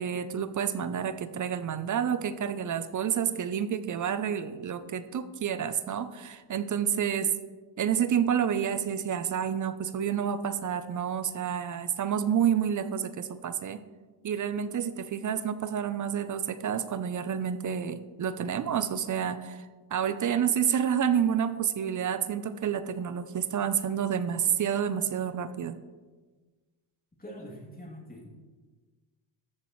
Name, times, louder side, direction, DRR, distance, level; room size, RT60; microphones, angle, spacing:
voice 1, 0.0-7.3 7.8-13.8 14.2-25.7, right 8 dB, 40° right, 12 dB, 0.6 m, -29 dB
voice 2, 27.2-28.3, equal, 15° left, -2 dB, 2.9 m, -44 dB
14.0 x 7.0 x 3.2 m, 1.3 s
cardioid pair, 80°, 50 cm